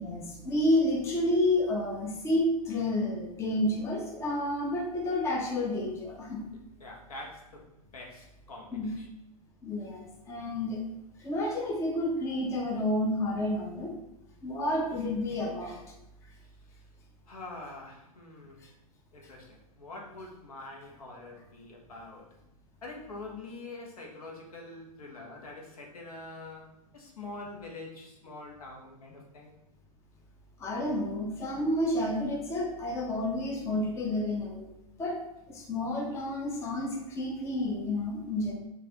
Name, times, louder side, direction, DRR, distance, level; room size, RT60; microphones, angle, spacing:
voice 1, 0.0-6.4 8.7-8.9 9.6-10.8 11.2-14.0 14.4-15.8 30.6-34.7 35.0-35.2 35.5-38.5, left 1 dB, 15° left, -1 dB, 0.5 m, -30 dB
voice 2, 6.8-7.7 7.9-9.1 17.3-18.6 19.1-22.3 22.8-29.5, left 2 dB, 65° left, 0 dB, 1.0 m, -45 dB
4.8 x 2.5 x 2.9 m, 0.85 s
figure-of-eight pair, 105°, 20 cm